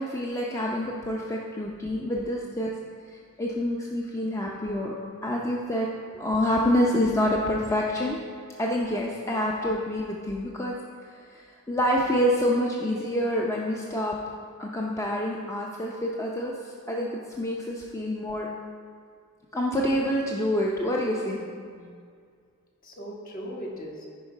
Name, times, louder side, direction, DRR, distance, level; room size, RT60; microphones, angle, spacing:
voice 1, 0.0-2.7 3.4-4.9 5.2-5.9 6.1-8.2 8.6-10.7 11.3-14.1 14.6-18.5 19.5-21.4, left 1 dB, 15° left, -2 dB, 0.6 m, -27 dB
voice 2, 4.4-4.9 5.2-5.4 21.2-22.0 22.8-24.1, equal, 40° left, -2 dB, 1.3 m, -41 dB
9.3 x 5.2 x 4.9 m, 2.2 s
head